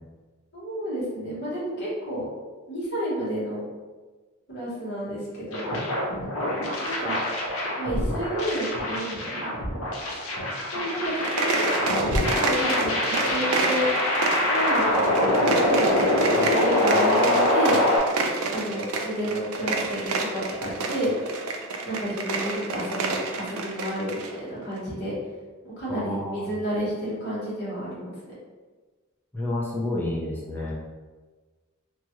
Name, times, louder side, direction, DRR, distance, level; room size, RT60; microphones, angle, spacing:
voice 1, 0.5-2.3 2.7-3.6 4.5-5.8 6.8-7.2 7.8-9.5 10.7-13.9 14.5-14.9 15.4-17.8 18.5-21.1 21.8-25.1 25.6-28.1, equal, 50° left, -8 dB, 1.2 m, -30 dB
sound 1, 5.5-18.0, left 1 dB, 85° left, 0.7 m, -24 dB
sound 2, 11.1-24.3, right 3 dB, 85° right, 0.4 m, -29 dB
voice 2, 25.9-26.5 29.3-30.7, left 1 dB, 10° left, -6 dB, 0.4 m, -30 dB
2.9 x 2.3 x 2.9 m, 1.3 s
head